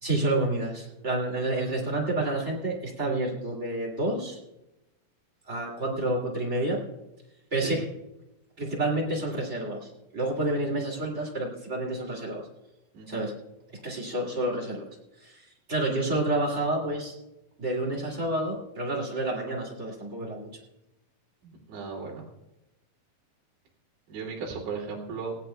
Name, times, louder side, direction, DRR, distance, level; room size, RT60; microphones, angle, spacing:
voice 1, 0.0-4.4 5.5-6.8 7.5-7.9 8.6-12.4 13.1-13.3 13.8-14.8 15.2-17.1 17.6-20.5, right 2 dB, 25° right, -2 dB, 1.6 m, -29 dB
voice 2, 12.9-13.3 21.7-22.3 24.1-25.4, right 5 dB, 75° right, -3 dB, 4.8 m, -36 dB
19.0 x 16.5 x 2.3 m, 0.93 s
omnidirectional pair, 5.1 m